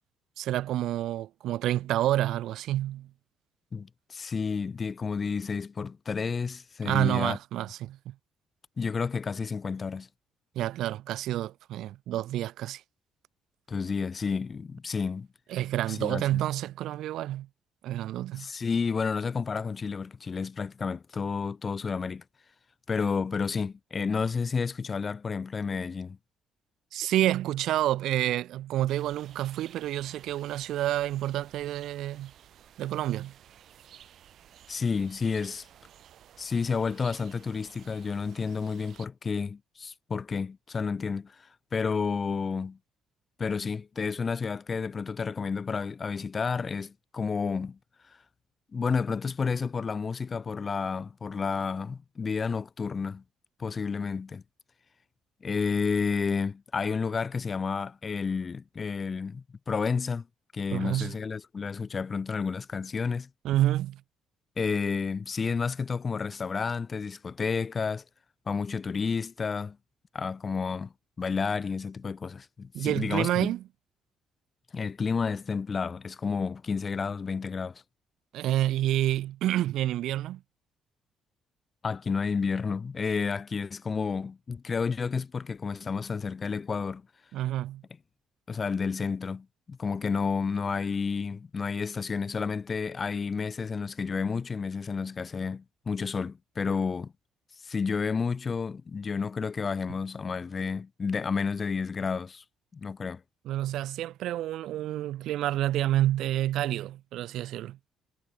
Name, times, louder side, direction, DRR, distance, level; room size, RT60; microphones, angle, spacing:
voice 1, 0.4-3.1 6.8-8.1 10.6-12.8 15.5-17.5 17.8-18.5 26.9-32.3 32.8-33.3 60.7-61.1 63.4-64.0 72.7-73.6 78.3-80.4 87.3-87.8 103.5-107.8, right 13 dB, 75° right, 0.6 m, -28 dB
voice 2, 3.7-7.4 8.8-10.1 13.7-15.3 15.9-16.4 18.4-22.2 22.9-26.2 34.7-35.7 36.4-42.8 43.4-47.8 48.7-53.2 53.6-54.4 55.4-60.3 60.5-63.3 64.6-68.0 68.5-69.8 70.1-70.9 71.2-73.5 74.7-77.8 81.8-87.0 88.5-97.1 97.6-102.4 102.7-103.2, left 5 dB, 30° left, 0.5 m, -31 dB
sound 1, 28.9-39.1, right 10 dB, 60° right, 5.1 m, -54 dB
cardioid pair, 130°, 0 cm